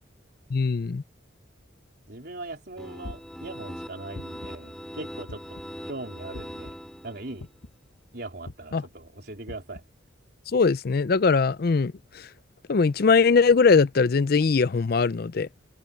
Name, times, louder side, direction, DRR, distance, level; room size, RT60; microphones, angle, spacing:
voice 1, 0.5-1.0 8.7-8.8 10.5-11.9 12.7-15.5, left 4 dB, 50° left, 0.4 m, -21 dB
voice 2, 2.1-5.6 5.9-6.7 7.0-7.5 8.1-9.8, right 2 dB, 55° right, 4.2 m, -40 dB
sound 1, 2.8-7.5, equal, 5° left, 3.2 m, -41 dB
sound 2, 3.0-3.5 4.1-4.6 5.3-5.7 6.3-6.7 7.4-7.8 8.4-8.8 9.5-9.8, left 1 dB, 85° left, 1.3 m, -41 dB
head